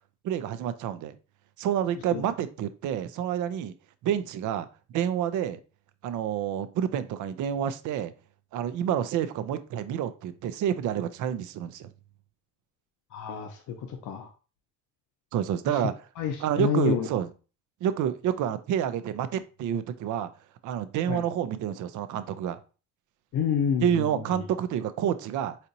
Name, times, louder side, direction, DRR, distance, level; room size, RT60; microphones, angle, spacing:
voice 1, 0.2-1.2 1.6-3.7 4.0-4.7 4.9-5.6 6.0-8.1 8.5-11.9 15.3-15.9 16.4-17.3 17.8-20.3 20.6-22.6 23.8-25.6, right 10 dB, 80° right, 12 dB, 0.5 m, -28 dB
voice 2, 13.1-13.6 13.9-14.3 16.2-17.1 21.1-21.2 23.3-24.2, left 7 dB, 75° left, 4 dB, 0.6 m, -28 dB
4.2 x 2.8 x 2.6 m, 0.34 s
cardioid pair, 90°, 30 cm